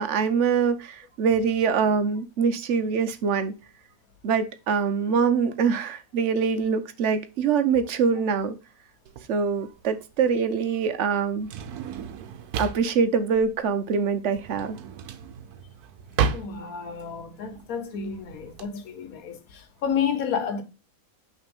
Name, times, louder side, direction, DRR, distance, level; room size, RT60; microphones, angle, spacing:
voice 1, 0.0-3.5 4.2-8.6 9.3-11.5 12.6-14.8, right 6 dB, 60° right, 1.0 m, -24 dB
Drawer open or close, 9.1-18.7, right 6 dB, 85° right, 1.2 m, -33 dB
voice 2, 16.3-20.6, left 7 dB, 70° left, 1.4 m, -30 dB
5.8 x 3.4 x 5.3 m
omnidirectional pair, 1.6 m